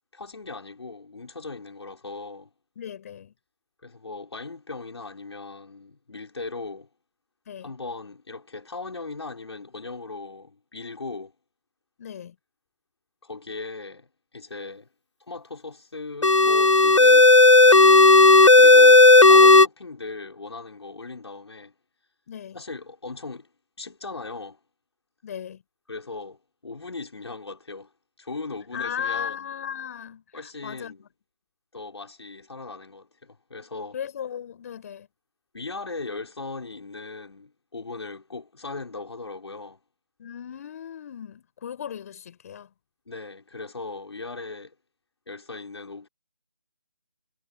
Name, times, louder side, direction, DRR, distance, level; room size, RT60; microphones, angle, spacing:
voice 1, 0.1-2.5 3.8-6.9 7.6-11.3 13.2-14.9 15.3-17.3 17.6-18.2 18.5-21.7 22.5-23.5 23.8-24.6 25.9-27.9 28.2-29.5 30.3-31.0 31.7-34.0 35.5-39.8 43.1-44.7 45.3-46.1, left 3 dB, 60° left, 5.8 m, -38 dB
voice 2, 2.8-3.3 7.5-7.7 12.0-12.4 22.3-22.6 25.2-25.6 28.7-30.9 33.9-35.1 40.2-42.7, left 8 dB, 30° left, 5.6 m, -36 dB
sound 1, 16.2-19.7, left 3 dB, 90° left, 0.9 m, -12 dB
figure-of-eight pair, 155°, 15 cm